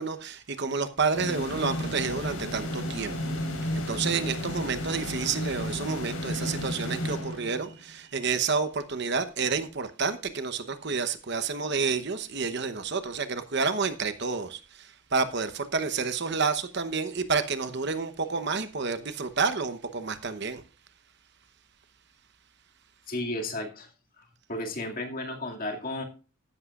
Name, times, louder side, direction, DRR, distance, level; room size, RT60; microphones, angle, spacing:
voice 1, 0.0-3.2 3.7-14.6 15.1-20.6, right 5 dB, 55° right, 0.9 m, -29 dB
sound 1, 1.1-7.9, left 1 dB, 90° left, 4.3 m, -33 dB
voice 2, 23.1-23.9 24.2-26.0, left 1 dB, 40° left, 2.2 m, -34 dB
14.0 x 11.0 x 2.5 m
head